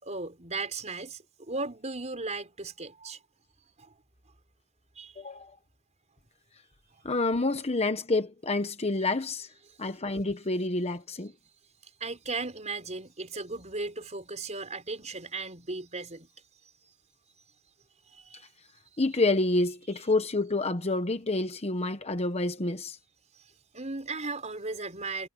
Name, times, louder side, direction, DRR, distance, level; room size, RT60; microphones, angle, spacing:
voice 1, 0.0-3.2 3.8-3.9 5.0-5.1 6.9-7.0 12.0-16.3 18.1-18.5 19.9-20.1 23.7-25.3, right 3 dB, 30° right, 5.3 m, -36 dB
voice 2, 5.2-5.5 7.0-9.5 9.8-11.3 19.0-23.0, left 2 dB, 30° left, 1.1 m, -28 dB
head